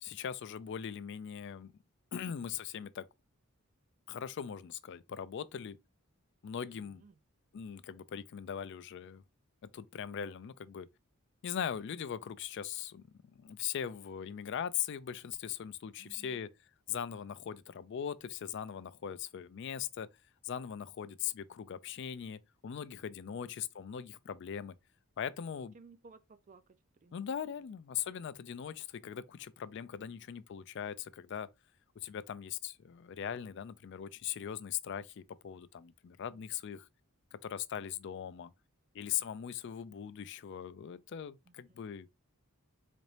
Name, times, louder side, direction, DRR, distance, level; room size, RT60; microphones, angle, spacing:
voice 1, 0.0-1.7 2.1-3.1 4.1-5.8 6.4-7.0 7.5-9.2 9.7-10.9 11.4-13.0 13.4-16.5 16.9-20.1 20.4-24.8 25.2-25.7 27.1-31.5 32.0-36.9 37.3-38.5 38.9-42.1, left 8 dB, 55° left, 0.3 m, -40 dB
voice 2, 6.7-7.2 16.0-16.4 23.3-23.5 25.7-27.2 30.0-30.3 41.5-41.8, right 4 dB, 35° right, 0.3 m, -59 dB
4.1 x 2.5 x 3.2 m
head